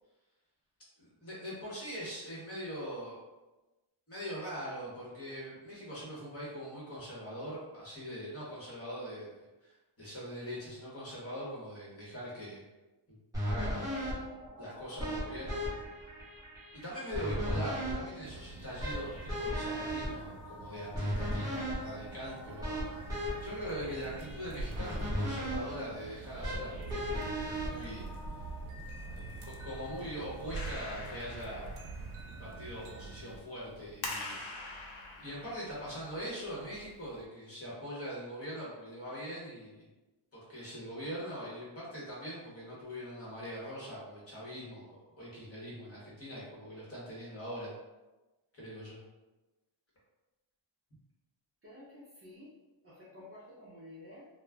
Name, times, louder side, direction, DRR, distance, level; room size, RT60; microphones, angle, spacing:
voice 1, 1.0-3.2 4.1-12.6 13.1-13.2 13.4-13.8 14.6-15.6 16.7-23.1 23.4-28.1 29.1-31.7 32.2-34.7 35.2-39.9 40.5-47.7 48.5-49.0, equal, 30° left, -7 dB, 0.9 m, -42 dB
sound 1, 13.3-28.6, equal, 5° right, 1.0 m, -37 dB
sound 2, 18.2-33.4, right 3 dB, 80° right, 0.6 m, -46 dB
Clapping, 30.5-37.2, left 2 dB, 65° left, 0.6 m, -45 dB
voice 2, 51.6-52.5 52.8-54.3, left 1 dB, 30° right, -8 dB, 0.6 m, -51 dB
2.3 x 2.0 x 3.3 m, 1.1 s
wide cardioid pair, 160°, 49 cm